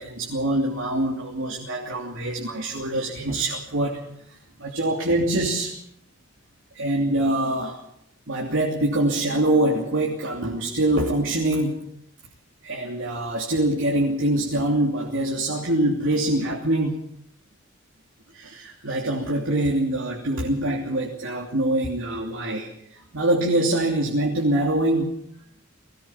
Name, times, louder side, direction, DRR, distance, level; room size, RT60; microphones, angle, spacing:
voice 1, 0.0-4.0 4.6-5.7 6.7-7.8 8.3-11.8 12.6-17.0 18.3-25.1, right 1 dB, 75° right, -2 dB, 3.0 m, -24 dB
20.5 x 18.5 x 7.3 m, 0.74 s
head